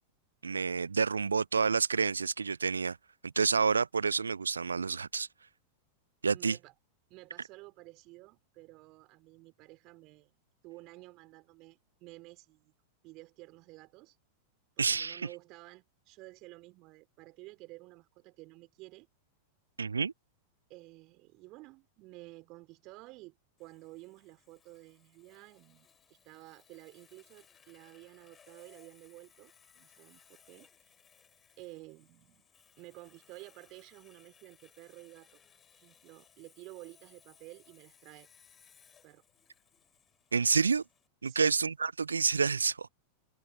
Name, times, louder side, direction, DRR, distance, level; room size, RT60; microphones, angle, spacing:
voice 1, 0.4-3.0 3.2-5.3 6.2-6.6 14.8-15.3 19.8-20.1 40.3-40.8 41.2-42.9, right 5 dB, 75° right, 0.3 m, -29 dB
voice 2, 6.2-6.7 7.1-12.7 13.0-14.2 14.8-19.1 20.7-30.9 31.6-32.4 32.8-35.4 35.7-38.3 39.0-39.2 41.3-41.5, right 22 dB, 40° right, 5.0 m, -52 dB
Sawing, 23.6-41.1, left 7 dB, 20° left, 6.9 m, -64 dB
figure-of-eight pair, 90°, 0 cm